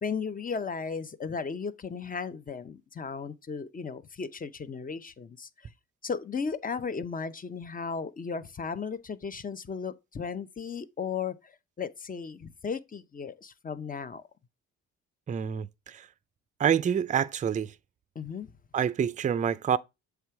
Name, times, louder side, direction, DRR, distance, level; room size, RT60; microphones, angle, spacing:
voice 1, 0.0-5.5 6.0-14.2 18.1-18.5, left 5 dB, 30° left, 0.7 m, -35 dB
voice 2, 15.3-16.1 16.6-17.7 18.7-19.8, right 8 dB, 25° right, 0.4 m, -27 dB
7.2 x 3.4 x 4.6 m
cardioid pair, 90°, 30 cm